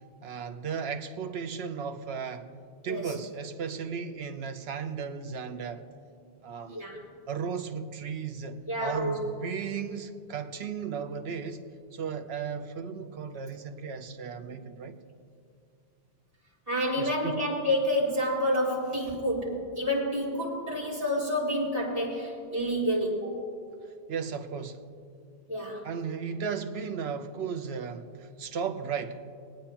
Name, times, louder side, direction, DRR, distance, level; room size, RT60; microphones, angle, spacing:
voice 1, 0.2-2.5 2.8-5.8 6.4-6.8 7.3-11.6 11.9-15.0 17.0-17.4 24.1-24.8 25.8-29.2, right 6 dB, 80° right, 8 dB, 1.0 m, -35 dB
voice 2, 8.7-9.3 16.7-23.3 25.5-25.8, equal, 35° right, -9 dB, 3.7 m, -29 dB
22.0 x 9.0 x 2.9 m, 2.5 s
omnidirectional pair, 1.1 m